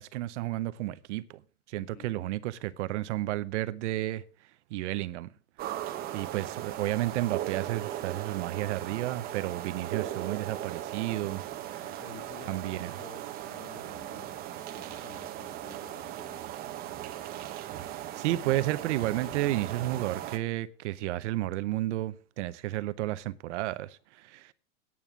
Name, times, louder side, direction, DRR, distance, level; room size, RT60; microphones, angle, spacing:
voice 1, 0.0-1.4 1.7-5.3 6.1-12.0 12.5-13.0 17.8-24.5, right 15 dB, 50° right, 0.7 m, -32 dB
voice 2, 1.8-2.2 11.8-14.4 14.7-16.4, left 6 dB, 20° left, 1.3 m, -51 dB
sound 1, 5.6-20.4, right 12 dB, 20° right, 0.8 m, -38 dB
9.3 x 8.6 x 5.9 m
supercardioid pair, 160°, 44 cm